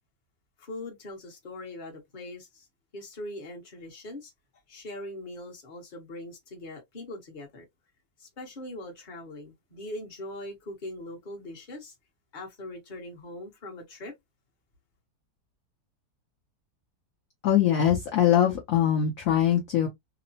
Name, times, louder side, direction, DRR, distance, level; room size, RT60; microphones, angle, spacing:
voice 1, 0.6-2.7 2.9-4.3 4.7-7.7 8.2-11.9 12.3-14.1, left 1 dB, 35° left, 1.0 m, -41 dB
voice 2, 17.4-19.9, left 10 dB, 65° left, 0.9 m, -22 dB
3.0 x 2.0 x 2.6 m
omnidirectional pair, 1.8 m